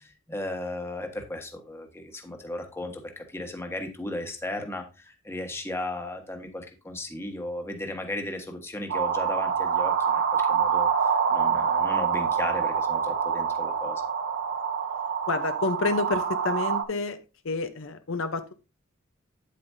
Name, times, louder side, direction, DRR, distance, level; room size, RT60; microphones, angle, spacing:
voice 1, 0.0-14.0, left 1 dB, 10° left, 4 dB, 1.3 m, -36 dB
sound 1, 8.9-16.8, right 7 dB, 60° right, 1.0 m, -26 dB
voice 2, 15.3-17.2 17.4-18.5, left 3 dB, 70° left, 9 dB, 0.8 m, -29 dB
8.9 x 8.4 x 2.7 m, 0.29 s
head